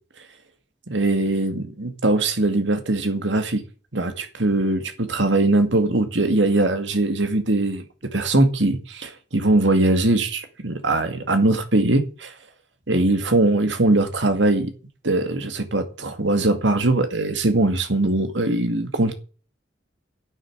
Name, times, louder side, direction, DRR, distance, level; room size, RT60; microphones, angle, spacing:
voice 1, 0.9-3.6 3.9-7.8 8.1-12.3 12.9-14.7 15.0-19.1, right 2 dB, 80° right, 2.3 m, -21 dB
11.5 x 7.0 x 9.7 m
head